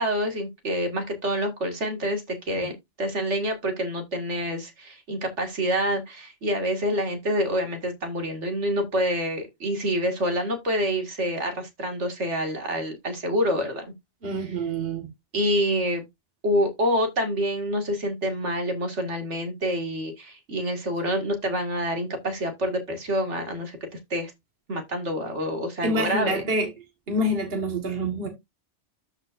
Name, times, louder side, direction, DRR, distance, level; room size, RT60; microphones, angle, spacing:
voice 1, 0.0-2.7 3.0-13.9 15.3-16.0 16.4-23.8 24.1-24.3 24.7-26.4, equal, 70° right, 2.3 m, -27 dB
voice 2, 14.2-15.1 25.8-26.7 27.1-28.3, right 1 dB, 50° right, 1.8 m, -26 dB
13.0 x 5.2 x 2.5 m
omnidirectional pair, 1.2 m